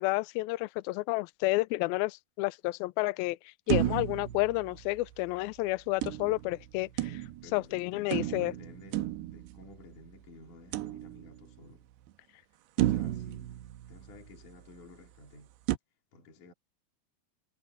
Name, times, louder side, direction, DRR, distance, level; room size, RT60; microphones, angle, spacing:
voice 1, 0.0-3.4 3.7-7.3 7.5-8.5, left 20 dB, 85° left, 2.1 m, -30 dB
sound 1, 3.7-5.3 6.0-7.6 8.1-10.0 10.7-11.6 12.1-12.2 12.8-14.5 15.7-15.8, right 14 dB, 80° right, 2.8 m, -33 dB
voice 2, 7.4-11.9 12.8-13.6 13.9-15.5 16.1-16.5, left 2 dB, 50° left, 4.7 m, -53 dB
omnidirectional pair, 4.9 m